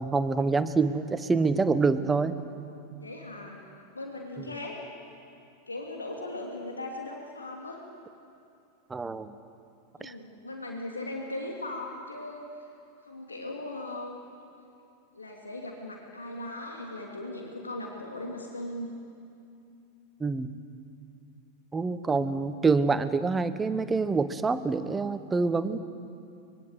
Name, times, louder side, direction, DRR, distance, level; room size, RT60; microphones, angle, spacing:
voice 1, 0.0-2.4 8.9-9.3 10.0-10.1 20.2-20.5 21.7-25.8, right 4 dB, 15° right, 12 dB, 1.2 m, -26 dB
voice 2, 2.9-3.6 3.9-4.8 5.7-7.8 10.0-12.7 13.0-14.2 15.1-18.9, left 2 dB, 80° left, 0 dB, 2.9 m, -38 dB
25.0 x 22.0 x 8.2 m, 2.6 s
figure-of-eight pair, 90°, 0 cm